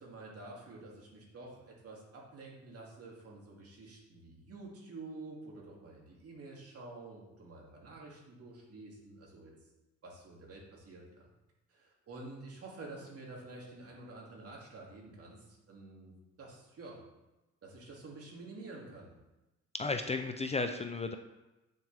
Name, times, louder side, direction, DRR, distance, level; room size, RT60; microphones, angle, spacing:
voice 1, 0.0-9.5 10.0-11.3 11.7-17.0 17.6-19.1, right 2 dB, 50° right, -2 dB, 2.6 m, -49 dB
voice 2, 19.8-21.2, left 3 dB, 20° left, 6 dB, 0.5 m, -34 dB
8.5 x 6.5 x 3.5 m, 1.0 s
cardioid pair, 90°, 30 cm